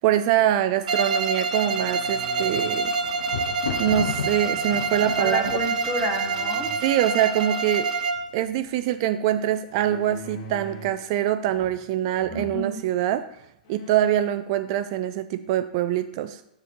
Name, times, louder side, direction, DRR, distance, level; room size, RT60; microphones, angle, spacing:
voice 1, 0.0-2.9 3.8-5.5 6.8-7.9 8.3-13.2 13.7-16.4, right 11 dB, 40° right, 10 dB, 0.4 m, -24 dB
Bowed string instrument, 0.9-8.3, right 4 dB, 75° right, 1.1 m, -26 dB
sound 1, 1.4-2.8 3.9-4.7 6.2-6.8 9.7-11.1 11.4-11.9 12.2-12.6 13.2-13.3 13.6-14.4, equal, 45° left, 1.7 m, -43 dB
Thunder, 2.3-7.4 8.2-8.7 8.9-9.0, left 7 dB, 70° left, 0.8 m, -35 dB
voice 2, 5.2-6.7 12.3-12.8, equal, 10° left, 0 dB, 1.4 m, -30 dB
9.4 x 3.7 x 4.7 m, 0.80 s
hypercardioid pair, 155°, 4 cm